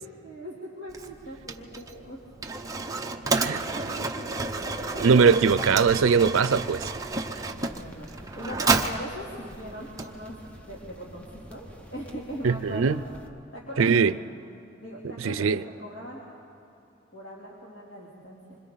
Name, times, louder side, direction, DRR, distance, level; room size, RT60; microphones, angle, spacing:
voice 1, 0.0-2.2 3.2-5.2 7.5-10.4 10.6-13.0 13.5-13.9 14.8-15.4 15.8-16.2 17.1-18.6, equal, 60° left, 3.0 m, -40 dB
Mechanisms, 0.9-10.6, right 3 dB, 15° right, 0.7 m, -31 dB
sound 1, 4.4-13.3, equal, 5° left, 1.0 m, -48 dB
voice 2, 5.0-6.9 12.4-13.0 13.8-14.1 15.2-15.6, right 5 dB, 85° right, 0.5 m, -21 dB
26.0 x 25.5 x 3.9 m
head